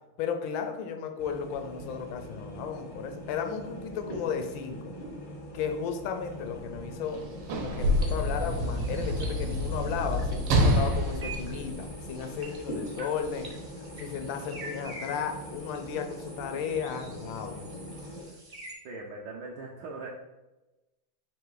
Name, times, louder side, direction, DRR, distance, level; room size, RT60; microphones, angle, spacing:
voice 1, 0.2-4.9 5.5-7.2 7.5-13.5 14.0-17.9, left 7 dB, 75° left, 6 dB, 1.2 m, -34 dB
sound 1, 1.2-18.2, equal, 45° left, 0.6 m, -42 dB
Sliding door / Slam, 7.0-12.4 13.3-13.5, equal, 90° right, 1.6 m, -27 dB
sound 2, 7.8-18.7, right 2 dB, 35° right, 0.6 m, -47 dB
voice 2, 18.8-20.1, right 3 dB, 75° right, -2 dB, 1.2 m, -40 dB
4.6 x 3.0 x 3.8 m, 1.0 s
omnidirectional pair, 2.3 m